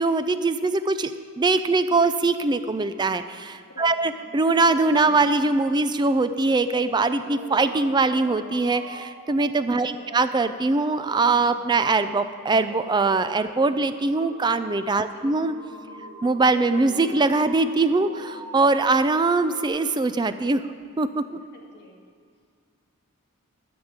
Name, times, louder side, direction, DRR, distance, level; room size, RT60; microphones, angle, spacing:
voice 1, 0.0-15.5 16.2-20.6 21.0-21.4, right 3 dB, 20° right, 11 dB, 0.3 m, -22 dB
sound 1, 4.0-19.7, right 1 dB, 65° right, 3.2 m, -44 dB
voice 2, 9.8-10.2 15.0-15.2 21.5-21.9, equal, 50° left, -2 dB, 1.9 m, -50 dB
13.0 x 5.3 x 7.2 m, 2.2 s
head